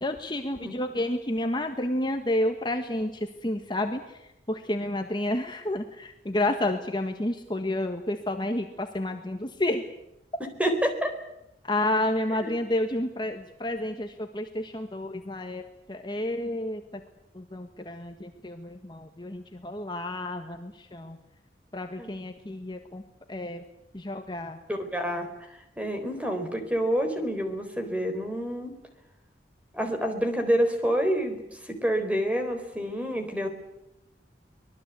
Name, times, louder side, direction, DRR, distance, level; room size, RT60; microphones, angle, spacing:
voice 1, 0.0-4.0 4.5-9.8 11.7-15.6 15.9-16.8 17.3-21.2 21.7-23.0 23.3-23.6 23.9-24.6, left 1 dB, 25° left, 4 dB, 1.5 m, -30 dB
voice 2, 10.6-11.1 12.4-12.5 22.0-22.1 24.7-25.3 25.8-28.7 29.7-31.4 31.6-33.5, equal, 10° right, 6 dB, 4.0 m, -27 dB
25.0 x 19.5 x 8.4 m, 0.89 s
head